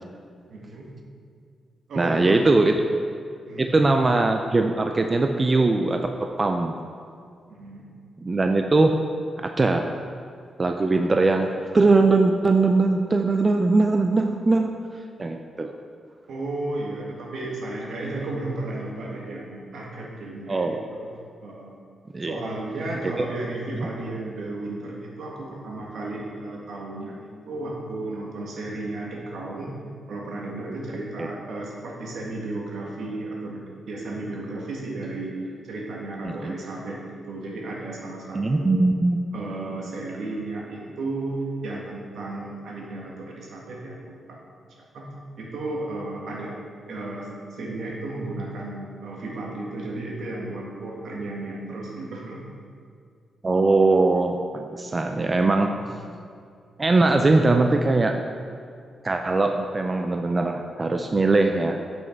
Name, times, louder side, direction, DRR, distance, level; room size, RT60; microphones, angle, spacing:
voice 1, 0.5-0.9 1.9-2.4 3.5-4.0 7.5-7.9 16.3-21.1 21.4-21.7 22.3-29.8 30.1-38.9 39.3-44.5 44.8-45.1 45.4-46.5 46.9-52.6 55.8-55.9, right 2 dB, 75° right, -2 dB, 1.7 m, -34 dB
voice 2, 2.0-2.8 3.6-6.8 8.2-9.0 9.4-10.0 10.6-14.7 15.2-15.8 20.5-20.8 22.1-22.3 23.7-23.9 36.2-36.5 38.3-39.2 53.4-55.8 56.8-58.2 59.0-61.8, right 3 dB, 25° right, 5 dB, 0.4 m, -21 dB
7.9 x 6.1 x 4.5 m, 2.3 s
wide cardioid pair, 130°, 0 cm